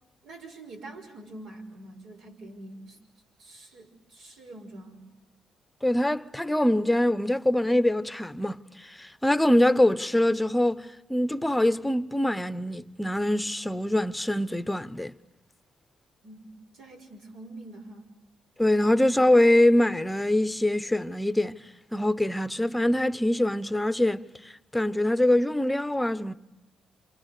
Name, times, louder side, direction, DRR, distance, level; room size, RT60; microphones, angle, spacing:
voice 1, 0.2-3.0 3.4-5.1 16.2-16.4 16.7-18.1, right 2 dB, 80° right, 5.6 m, -45 dB
voice 2, 5.8-15.1 18.6-21.6 21.9-26.3, left 1 dB, 5° left, 0.8 m, -24 dB
28.0 x 27.5 x 6.7 m
cardioid pair, 90°, 0 cm